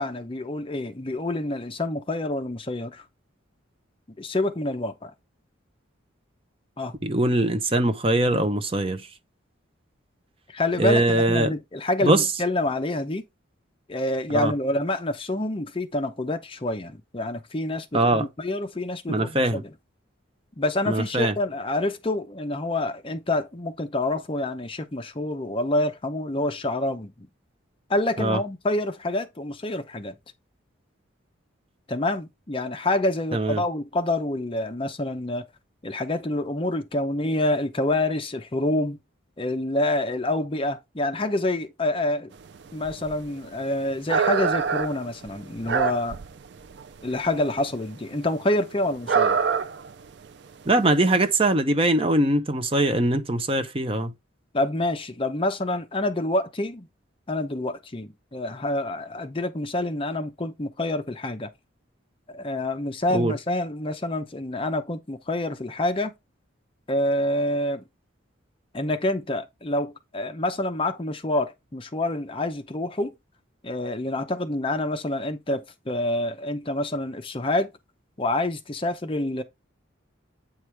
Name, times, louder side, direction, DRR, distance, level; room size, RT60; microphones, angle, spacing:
voice 1, 0.0-3.0 4.2-5.1 6.8-6.9 10.5-13.2 13.9-19.6 20.6-27.1 27.9-30.1 31.9-35.4 35.8-39.0 39.4-42.3 42.7-46.2 47.0-49.4 54.5-56.9 57.3-61.5 62.3-66.1 66.9-67.8 68.7-73.1 73.6-77.7 78.2-79.4, left 1 dB, 25° left, 0.6 m, -27 dB
voice 2, 7.0-9.1 10.8-11.5 12.0-12.2 14.3-14.5 17.9-18.3 19.1-19.6 20.9-21.3 28.2-28.4 33.3-33.6 50.7-54.1 63.1-63.3, right 2 dB, 25° right, 0.7 m, -22 dB
sound 1, 42.5-42.6 42.8-43.5 43.9-46.4 46.6-47.4 47.7-47.8 48.2-48.3 49.1-49.9 50.2-50.3 51.0-51.1, right 6 dB, 55° right, 0.4 m, -25 dB
8.5 x 4.7 x 3.3 m
head